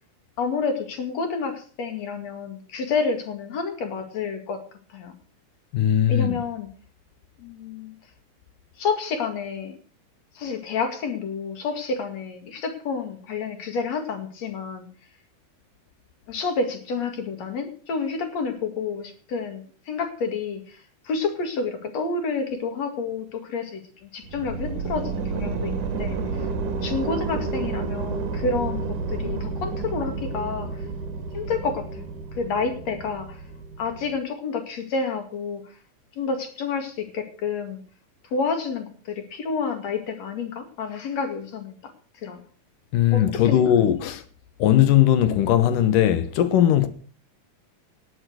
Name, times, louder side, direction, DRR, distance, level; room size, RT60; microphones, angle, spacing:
voice 1, 0.4-4.6 4.9-5.1 6.1-6.7 7.4-7.9 8.8-9.8 10.3-14.9 16.3-26.5 26.8-30.8 31.3-33.4 33.8-35.8 36.2-37.8 38.3-41.8 42.1-42.4 43.1-43.7, left 4 dB, 55° left, 3.2 m, -29 dB
voice 2, 5.7-6.3 42.9-44.2 44.6-46.9, left 11 dB, 85° left, 2.8 m, -19 dB
sound 1, 24.2-34.2, right 4 dB, 70° right, 3.1 m, -30 dB
18.5 x 7.3 x 6.4 m
omnidirectional pair, 3.8 m